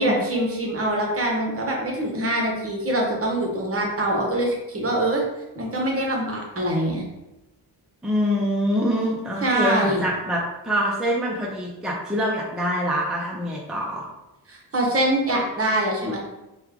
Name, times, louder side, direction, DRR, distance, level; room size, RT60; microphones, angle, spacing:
voice 1, 0.0-5.2 5.5-7.0 9.4-10.0 14.5-16.2, right 1 dB, 30° right, -1 dB, 1.0 m, -24 dB
voice 2, 8.0-14.0, equal, ahead, -4 dB, 0.6 m, -25 dB
3.0 x 2.4 x 3.6 m, 0.99 s
cardioid pair, 70°, 44 cm